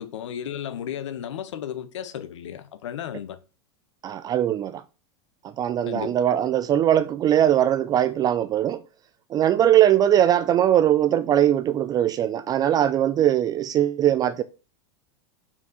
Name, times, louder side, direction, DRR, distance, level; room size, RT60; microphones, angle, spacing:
voice 1, 0.0-3.4 5.9-6.1, left 9 dB, 90° left, 0.9 m, -34 dB
voice 2, 4.0-4.8 5.4-8.8 9.3-14.4, right 11 dB, 25° right, 0.3 m, -21 dB
5.7 x 4.8 x 3.9 m
supercardioid pair, 130°, 15 cm